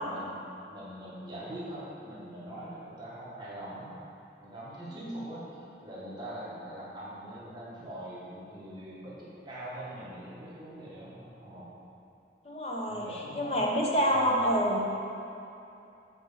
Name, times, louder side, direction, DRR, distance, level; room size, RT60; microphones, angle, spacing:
voice 1, 0.0-4.0 4.4-11.7 12.9-13.7 14.1-14.4, right 1 dB, 25° right, -8 dB, 1.5 m, -43 dB
voice 2, 12.4-14.8, equal, 35° left, -2 dB, 0.9 m, -28 dB
7.6 x 4.7 x 5.6 m, 2.8 s
head